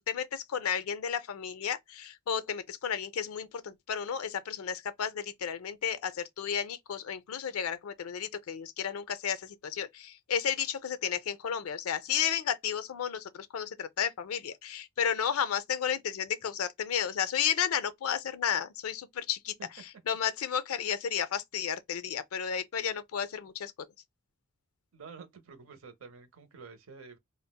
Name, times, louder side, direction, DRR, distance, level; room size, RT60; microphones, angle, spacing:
voice 1, 0.1-19.5 20.1-23.7, left 8 dB, 85° left, 0.4 m, -32 dB
voice 2, 24.9-27.2, right 5 dB, 70° right, 0.7 m, -49 dB
3.8 x 2.0 x 2.2 m
head